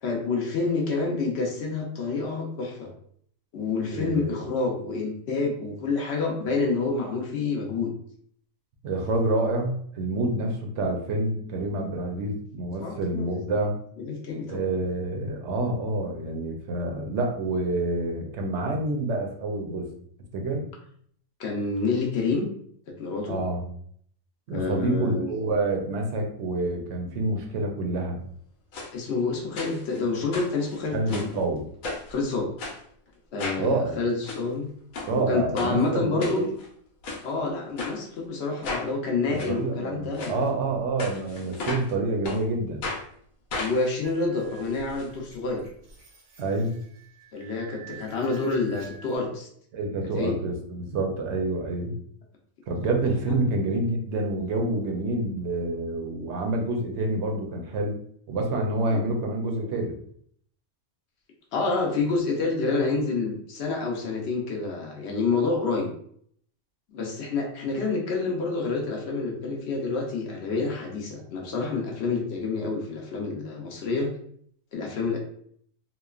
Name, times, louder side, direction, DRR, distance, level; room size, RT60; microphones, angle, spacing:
voice 1, 0.0-2.9 3.5-7.9 12.8-13.5 14.0-14.6 21.4-22.5 23.0-23.4 24.5-25.3 28.9-31.4 32.1-32.5 33.3-34.7 35.1-36.5 37.2-40.5 43.6-45.7 47.3-49.5 50.1-50.4 58.9-59.0 61.5-65.9 66.9-74.1 74.7-75.2, left 3 dB, 65° left, 0 dB, 0.8 m, -28 dB
voice 2, 3.9-4.3 8.8-13.8 14.5-19.9 20.3-20.6 23.3-23.6 24.5-28.2 30.9-31.7 33.6-34.0 35.1-36.5 39.2-42.9 46.4-46.8 47.9-48.0 49.7-51.9 52.7-58.0 58.3-59.9, right 2 dB, 70° right, 2 dB, 0.8 m, -27 dB
sound 1, 28.7-28.9 29.6-30.0 30.3-31.4 31.8-32.2 32.6-32.8 33.4-33.7 34.1-34.4 34.9-35.1 35.6-35.7 36.2-36.7 37.0-37.2 37.8-37.9 38.6-38.9 39.4-39.5 40.1-40.3 41.0-41.9 42.2-42.4 42.8-43.0 43.5-45.0 45.3-45.4 45.7-45.8, left 3 dB, 85° left, 1.0 m, -34 dB
sound 2, 44.0-49.2, right 5 dB, 50° right, 0.4 m, -49 dB
3.0 x 2.1 x 2.3 m, 0.62 s
omnidirectional pair, 1.4 m